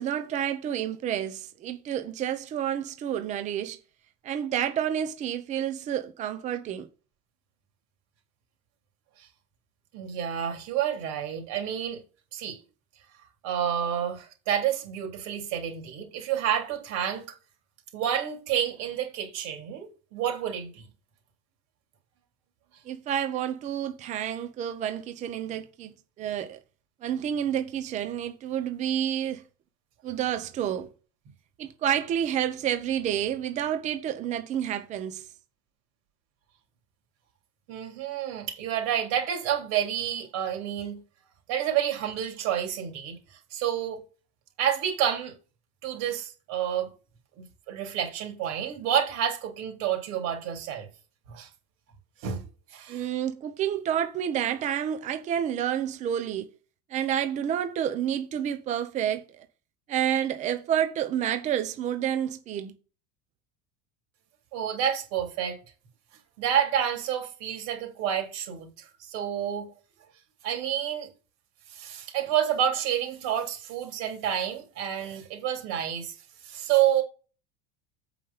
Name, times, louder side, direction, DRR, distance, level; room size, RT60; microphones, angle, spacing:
voice 1, 0.0-3.8 4.2-6.9 22.8-25.9 26.2-26.6 27.0-29.4 30.0-30.9 31.6-35.2 52.9-56.5 56.9-59.4 59.9-62.7, right 10 dB, 20° right, 0.7 m, -29 dB
voice 2, 9.9-12.0 12.3-12.6 13.4-17.3 17.9-20.8 37.7-41.0 41.5-43.2 43.5-44.0 44.6-45.3 45.8-46.9 47.4-50.9 51.3-51.5 52.2-52.4 52.7-53.0 64.5-65.6 66.4-69.7 70.4-71.1 71.7-76.2 76.4-77.0, right 9 dB, 50° right, 3.5 m, -29 dB
8.3 x 5.1 x 5.6 m
cardioid pair, 170°, 35 cm